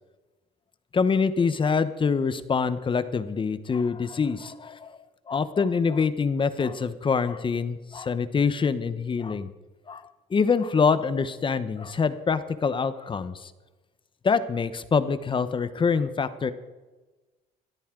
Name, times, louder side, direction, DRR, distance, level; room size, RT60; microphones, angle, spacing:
voice 1, 0.9-5.0 5.3-9.5 9.9-10.0 10.3-13.5 14.2-16.5, left 5 dB, 30° left, 13 dB, 1.0 m, -25 dB
20.0 x 13.5 x 3.8 m, 1.2 s
cardioid pair, 110°, 17 cm